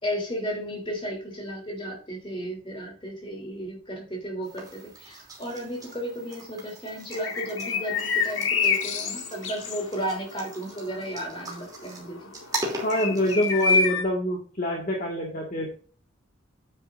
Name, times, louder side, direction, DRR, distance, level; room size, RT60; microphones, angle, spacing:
voice 1, 0.0-12.3, equal, 25° left, 1 dB, 3.3 m, -34 dB
sound 1, 4.4-13.9, right 2 dB, 20° right, 2.8 m, -40 dB
sound 2, 7.1-14.0, left 4 dB, 75° left, 1.9 m, -27 dB
voice 2, 12.8-15.8, equal, 40° left, -1 dB, 1.9 m, -26 dB
9.6 x 9.5 x 2.6 m, 0.39 s
head